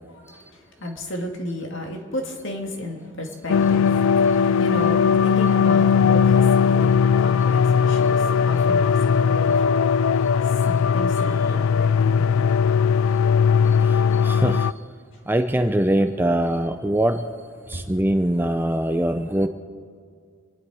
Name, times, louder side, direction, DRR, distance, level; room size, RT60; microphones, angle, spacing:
voice 1, 0.1-3.9 4.3-10.1 10.4-12.7 17.7-17.8, left 1 dB, 60° left, 2 dB, 2.2 m, -33 dB
sound 1, 3.5-14.7, left 6 dB, 75° left, 0.3 m, -19 dB
voice 2, 13.8-14.7 15.3-17.3 17.7-19.5, right 1 dB, 10° right, 7 dB, 0.5 m, -22 dB
27.0 x 11.0 x 4.8 m, 2.1 s
head